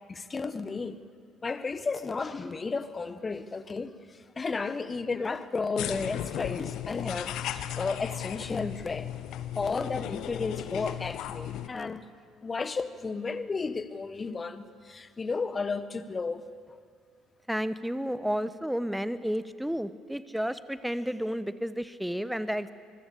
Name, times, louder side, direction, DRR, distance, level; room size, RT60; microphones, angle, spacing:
voice 1, 0.1-1.0 1.4-4.0 4.4-9.1 9.5-12.0 12.4-16.4, left 4 dB, 30° left, 13 dB, 1.4 m, -33 dB
sound 1, 5.8-11.7, left 11 dB, 60° left, 1.1 m, -36 dB
voice 2, 17.5-22.7, equal, 5° right, 14 dB, 1.2 m, -31 dB
25.0 x 23.0 x 7.0 m, 2.1 s
figure-of-eight pair, 50°, 0 cm